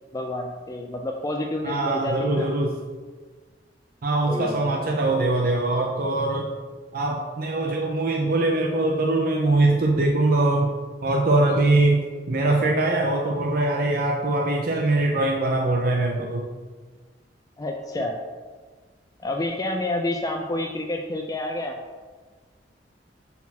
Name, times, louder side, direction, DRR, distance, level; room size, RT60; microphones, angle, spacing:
voice 1, 0.1-2.5 4.3-4.6 17.6-18.2 19.2-21.8, left 1 dB, 20° left, 3 dB, 0.4 m, -29 dB
voice 2, 1.6-2.8 4.0-6.5 6.9-10.7 11.0-16.5, right 2 dB, 55° right, 0 dB, 0.6 m, -22 dB
7.1 x 4.2 x 4.1 m, 1.5 s
head